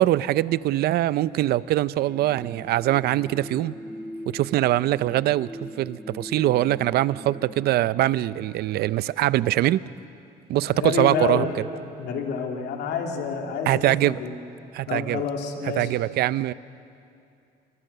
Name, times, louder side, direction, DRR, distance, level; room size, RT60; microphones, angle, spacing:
voice 1, 0.0-3.8 4.3-9.8 10.5-11.5 13.7-14.1 14.7-15.2 15.8-16.5, right 14 dB, 70° right, 17 dB, 0.6 m, -23 dB
sound 1, 2.0-7.7, equal, 5° right, 1.4 m, -41 dB
voice 2, 10.7-11.5 12.0-14.3 14.9-15.9, left 6 dB, 80° left, 2 dB, 3.0 m, -28 dB
29.0 x 22.0 x 6.8 m, 2.5 s
cardioid pair, 110°, 17 cm